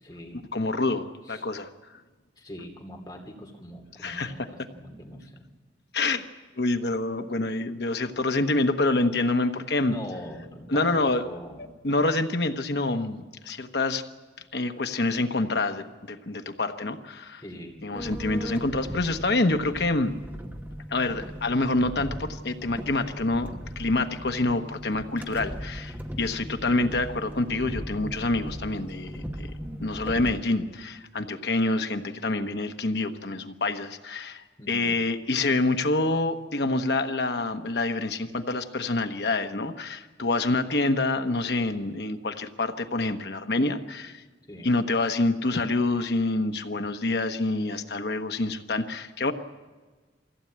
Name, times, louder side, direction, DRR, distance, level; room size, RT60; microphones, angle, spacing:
voice 1, 0.0-0.5 1.3-1.5 2.4-5.5 9.8-11.7 17.4-17.8 34.6-35.0 44.5-44.7, left 1 dB, 25° left, 1 dB, 2.6 m, -42 dB
voice 2, 0.5-1.7 4.0-4.3 5.9-6.2 6.6-10.0 10.7-11.2 11.8-14.0 14.5-17.4 17.8-20.1 20.9-23.5 23.8-29.5 29.8-44.2 44.6-49.3, left 2 dB, 60° left, 7 dB, 1.1 m, -27 dB
sound 1, 17.9-30.4, equal, 10° right, 1.1 m, -38 dB
22.5 x 15.5 x 8.7 m, 1.3 s
head